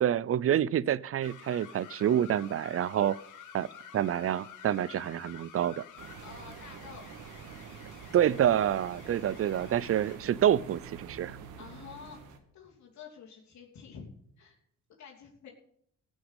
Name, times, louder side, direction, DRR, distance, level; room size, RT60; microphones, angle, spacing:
voice 1, 0.0-3.2 3.5-3.7 3.9-5.8 8.1-11.4, right 10 dB, 50° right, 0.6 m, -27 dB
sound 1, 1.2-10.3, left 8 dB, 85° left, 1.6 m, -51 dB
sound 2, 6.0-12.4, right 6 dB, 90° right, 1.9 m, -47 dB
voice 2, 6.2-7.1 11.6-12.2 12.5-14.1 14.4-14.6 15.0-15.5, left 6 dB, 65° left, 3.0 m, -49 dB
15.5 x 6.3 x 8.1 m
cardioid pair, 90°, 30 cm